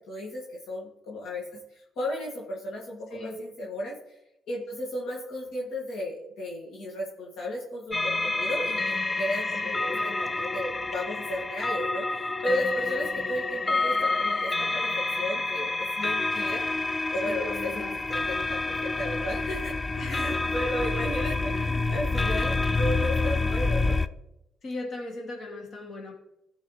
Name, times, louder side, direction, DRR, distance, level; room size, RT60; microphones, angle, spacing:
voice 1, 0.1-4.0 4.5-16.6 17.1-19.8 20.0-24.0, left 1 dB, 75° left, -4 dB, 2.3 m, -34 dB
sound 1, 7.9-24.1, left 3 dB, 25° left, 0.4 m, -28 dB
voice 2, 9.6-10.2 17.3-17.9 19.9-20.5 21.4-21.9 24.6-26.1, left 2 dB, 55° left, 0 dB, 2.7 m, -38 dB
15.0 x 5.5 x 3.3 m, 0.86 s
cardioid pair, 90°, 0 cm